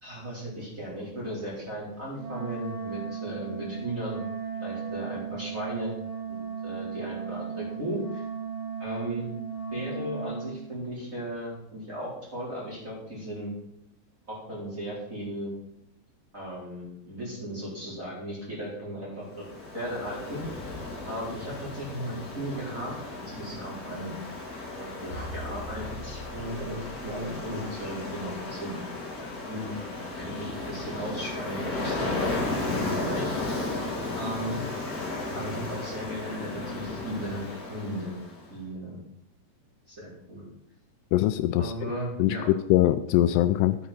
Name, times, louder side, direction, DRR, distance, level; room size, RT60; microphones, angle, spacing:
voice 1, 0.0-4.2 4.5-5.9 6.3-8.2 8.8-9.3 9.7-13.5 14.3-15.5 16.3-19.5 19.7-20.4 21.1-22.9 23.3-24.1 24.6-28.8 29.2-29.7 30.2-32.4 32.7-33.3 34.1-34.6 35.3-37.4 37.7-38.2 38.5-39.0 39.9-40.4 41.6-42.5, right 1 dB, 20° right, -6 dB, 4.1 m, -36 dB
Wind instrument woodwind instrument, 2.1-10.6, right 6 dB, 55° right, 4.5 m, -36 dB
Ocean, 19.3-38.4, left 2 dB, 25° left, 2.5 m, -35 dB
sound 1, 24.8-28.7, left 2 dB, 60° left, 3.5 m, -43 dB
voice 2, 41.1-41.7 42.2-43.8, left 14 dB, 85° left, 11 dB, 2.6 m, -22 dB
12.5 x 8.4 x 4.3 m, 0.76 s
omnidirectional pair, 4.9 m